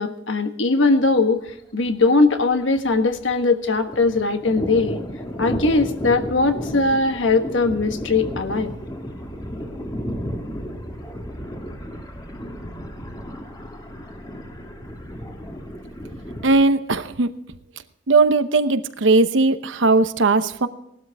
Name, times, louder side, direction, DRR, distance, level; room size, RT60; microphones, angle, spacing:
voice 1, 0.0-1.4 1.7-5.0 5.4-8.7, left 3 dB, 75° left, 8 dB, 1.3 m, -20 dB
Thunder, 1.0-1.2 1.5-1.6 1.9-3.4 3.6-16.6, equal, 20° left, 1.8 m, -33 dB
voice 2, 16.4-17.3 18.1-20.7, right 3 dB, 75° right, 11 dB, 0.9 m, -18 dB
18.0 x 12.5 x 3.5 m, 0.80 s
head